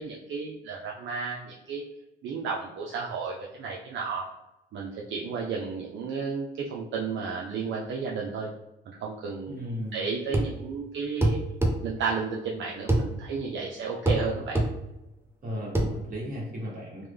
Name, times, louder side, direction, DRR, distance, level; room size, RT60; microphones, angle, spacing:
voice 1, 0.0-1.8 2.2-4.2 4.7-8.5 8.9-9.6 9.9-11.4 11.8-14.6, right 5 dB, 70° right, -2 dB, 0.5 m, -33 dB
voice 2, 9.5-10.1 15.4-17.1, equal, 45° right, -4 dB, 1.4 m, -35 dB
sound 1, 10.3-10.6 11.2-11.8 12.9-13.1 14.1-14.2 14.6-14.7 15.8-15.9, right 1 dB, 10° right, 0.5 m, -23 dB
3.1 x 2.1 x 3.4 m, 0.96 s
cardioid pair, 90°, 20 cm